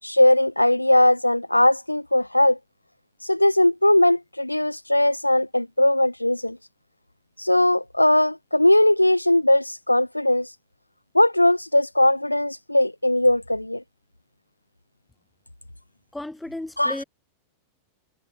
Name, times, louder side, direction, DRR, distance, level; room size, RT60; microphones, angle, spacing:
voice 1, 0.0-2.6 3.2-6.6 7.4-10.5 11.1-13.8 16.8-17.0, left 1 dB, 85° left, 0.5 m, -19 dB
voice 2, 16.1-17.0, left 1 dB, 5° left, 2.4 m, -34 dB
figure-of-eight pair, 90°, 0 cm